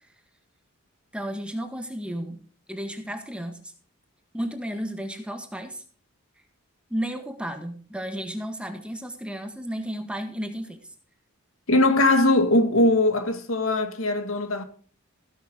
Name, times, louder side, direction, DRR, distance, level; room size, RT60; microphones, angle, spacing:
voice 1, 1.1-2.4 2.7-3.7 4.3-5.8 6.9-10.8, equal, 5° right, 1.7 m, -33 dB
voice 2, 11.7-14.6, left 2 dB, 70° left, 2.1 m, -20 dB
16.0 x 11.5 x 3.8 m
head